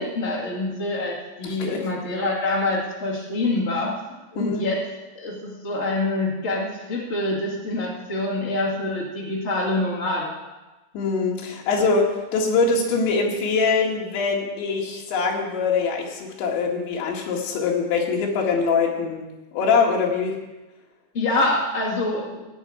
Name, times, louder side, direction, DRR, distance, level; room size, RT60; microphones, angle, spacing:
voice 1, 0.0-4.0 4.3-4.9 5.1-10.4 21.1-22.4, left 2 dB, 55° left, -5 dB, 0.7 m, -26 dB
voice 2, 1.4-1.8 4.4-4.7 10.9-20.4, left 4 dB, 75° left, -1 dB, 4.2 m, -23 dB
16.5 x 5.8 x 8.8 m, 1.1 s
omnidirectional pair, 5.3 m